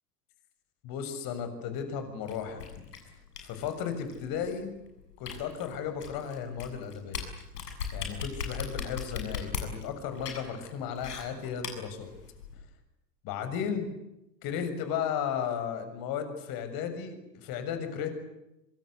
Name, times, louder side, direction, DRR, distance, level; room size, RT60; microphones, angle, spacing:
voice 1, 0.8-2.6 3.4-4.7 5.2-7.2 7.9-12.1 13.2-13.9 14.4-18.1, left 7 dB, 45° left, 8 dB, 6.9 m, -34 dB
sound 1, 2.3-12.6, left 6 dB, 75° left, 7.7 m, -39 dB
26.5 x 26.0 x 8.2 m, 0.89 s
figure-of-eight pair, 85°, 49 cm